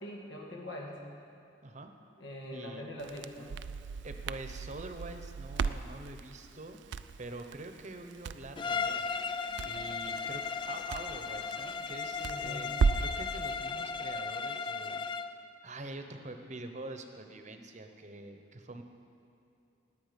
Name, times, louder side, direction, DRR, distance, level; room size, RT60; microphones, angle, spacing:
voice 1, 0.0-1.0 2.2-3.5 12.2-12.7, left 1 dB, 70° left, -1 dB, 2.1 m, -43 dB
voice 2, 2.5-2.8 4.0-9.1 9.6-12.7 13.0-15.1 15.6-18.8, right 2 dB, 40° right, 6 dB, 0.9 m, -45 dB
Crackle, 3.0-13.2, right 5 dB, 65° right, 0.4 m, -36 dB
Bowed string instrument, 8.6-15.4, left 5 dB, 25° left, 0.3 m, -36 dB
19.0 x 8.5 x 5.2 m, 2.6 s
head